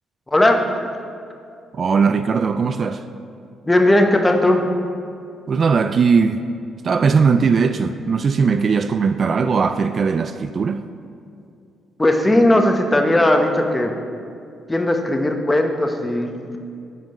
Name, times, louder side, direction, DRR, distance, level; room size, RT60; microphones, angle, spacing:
voice 1, 0.3-0.6 3.7-4.6 12.0-13.9 14.7-16.6, left 1 dB, 15° left, 4 dB, 0.9 m, -17 dB
voice 2, 1.7-3.0 5.5-6.4 6.8-10.8, right 5 dB, 45° right, 10 dB, 0.3 m, -19 dB
9.3 x 5.1 x 6.3 m, 2.4 s
cardioid pair, 90°, 0 cm